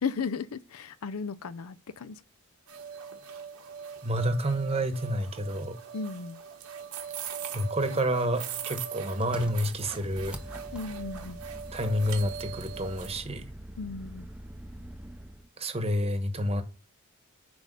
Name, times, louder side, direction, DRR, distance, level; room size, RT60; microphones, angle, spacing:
voice 1, 0.0-2.2 5.9-6.4 10.7-11.4 13.8-14.3, left 5 dB, 80° left, 0.5 m, -35 dB
sound 1, 2.7-13.1, right 8 dB, 80° right, 1.4 m, -40 dB
voice 2, 4.0-5.8 7.5-10.4 11.7-13.5 15.6-16.6, equal, 25° right, 1.0 m, -29 dB
Engine, 9.2-15.5, right 1 dB, 5° right, 0.5 m, -44 dB
6.1 x 4.9 x 6.7 m
head